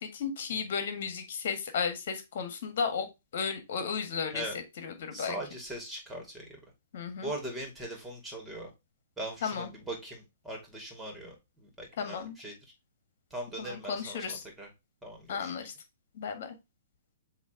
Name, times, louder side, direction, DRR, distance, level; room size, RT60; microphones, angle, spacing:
voice 1, 0.0-5.4 6.9-7.3 9.4-9.7 12.0-12.4 13.6-14.4 15.3-15.7 16.2-16.6, left 6 dB, 55° left, 8 dB, 1.7 m, -34 dB
voice 2, 5.1-6.5 7.2-8.7 9.2-12.5 13.3-14.7 15.0-15.5, right 1 dB, 10° right, 0 dB, 2.9 m, -40 dB
7.2 x 3.1 x 4.5 m, 0.23 s
figure-of-eight pair, 115°, 0 cm